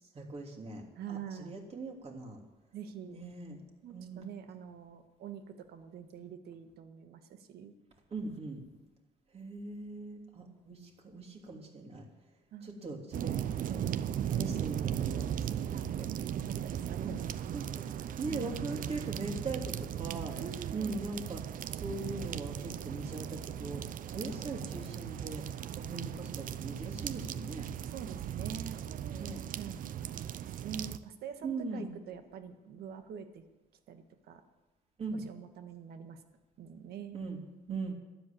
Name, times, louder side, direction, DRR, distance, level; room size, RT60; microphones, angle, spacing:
voice 1, 0.1-0.8 1.1-2.4 3.1-3.6 3.9-4.2 8.1-8.6 9.3-12.1 12.6-13.4 13.7-13.9 14.3-16.1 17.0-17.1 17.5-17.8 18.2-20.4 20.7-21.4 21.7-25.4 25.7-27.7 29.0-29.4 31.4-31.9 35.0-35.2 37.1-37.4 37.7-37.9, right 3 dB, 35° right, 1 dB, 3.3 m, -40 dB
voice 2, 0.9-1.6 2.7-3.2 3.8-7.7 12.5-12.9 15.7-15.8 16.3-17.4 18.3-18.6 20.3-21.0 27.9-29.8 30.1-33.5 33.9-34.4 35.1-36.2 36.6-37.2 37.7-37.9, right 7 dB, 70° right, 8 dB, 1.6 m, -45 dB
sound 1, 13.1-31.0, right 10 dB, 55° right, 0.7 m, -37 dB
12.5 x 10.5 x 8.6 m, 1.1 s
cardioid pair, 110°, 17 cm